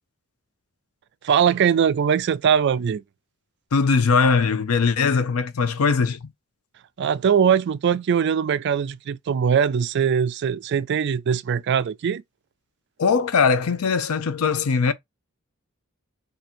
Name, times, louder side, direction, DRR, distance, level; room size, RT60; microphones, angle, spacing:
voice 1, 1.2-3.0 7.0-12.2, right 7 dB, 55° right, 0.3 m, -21 dB
voice 2, 3.7-6.3 13.0-14.9, left 5 dB, 85° left, 0.6 m, -20 dB
2.7 x 2.6 x 4.2 m
head